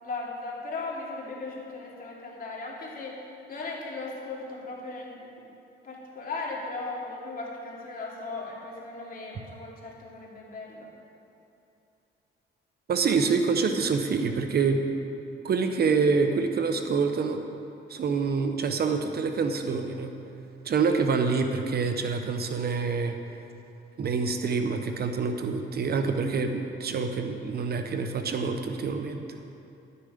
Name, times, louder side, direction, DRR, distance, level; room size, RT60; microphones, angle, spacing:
voice 1, 0.0-3.1 3.5-5.5 5.8-10.9, left 3 dB, 45° left, -3 dB, 2.8 m, -37 dB
voice 2, 12.9-14.8 15.4-17.4 17.9-20.1 20.6-23.2 24.0-29.3, right 5 dB, 50° right, 6 dB, 0.9 m, -26 dB
12.0 x 9.6 x 5.1 m, 2.8 s
cardioid pair, 90°, 20 cm